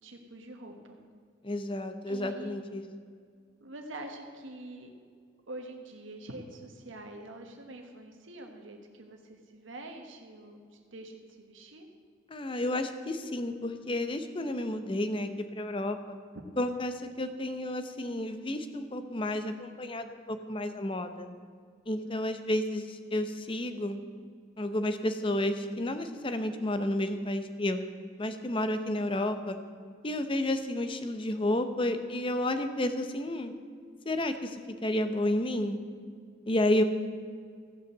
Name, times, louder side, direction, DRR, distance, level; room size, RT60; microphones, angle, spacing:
voice 1, 0.0-1.0 2.1-2.6 3.6-4.9 5.5-11.9 16.3-16.4 22.0-22.5, right 1 dB, 90° right, 3 dB, 1.3 m, -45 dB
voice 2, 1.4-2.8 12.3-16.2 16.6-21.3 21.9-24.0 24.6-27.8 28.2-29.6 30.0-33.5 34.1-34.5 34.8-35.8 36.5-36.8, left 1 dB, 25° left, 9 dB, 0.7 m, -31 dB
15.0 x 5.7 x 7.4 m, 2.1 s
head